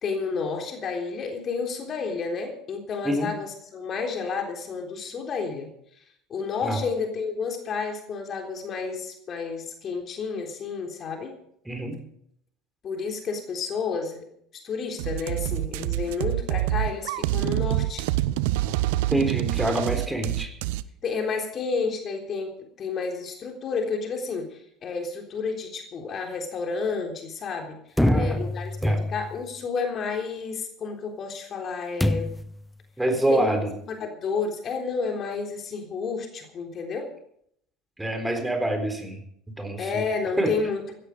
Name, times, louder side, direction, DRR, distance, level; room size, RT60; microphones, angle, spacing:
voice 1, 0.0-5.7 6.3-11.3 12.8-14.3 14.6-18.1 21.0-22.5 22.8-27.8 28.1-32.3 33.3-33.5 33.9-37.1 39.8-40.8, left 5 dB, 40° left, 3 dB, 3.6 m, -31 dB
voice 2, 11.7-12.0 19.1-20.5 28.0-28.4 28.8-29.0 33.0-33.7 38.0-39.2 39.6-40.0 40.4-40.5, right 1 dB, 10° right, 6 dB, 4.1 m, -26 dB
sound 1, 15.0-20.8, right 16 dB, 70° right, 0.6 m, -26 dB
sound 2, 28.0-29.5 32.0-32.6, left 1 dB, 5° left, 0.9 m, -25 dB
16.5 x 13.5 x 5.2 m, 0.68 s
hypercardioid pair, 70°, 0 cm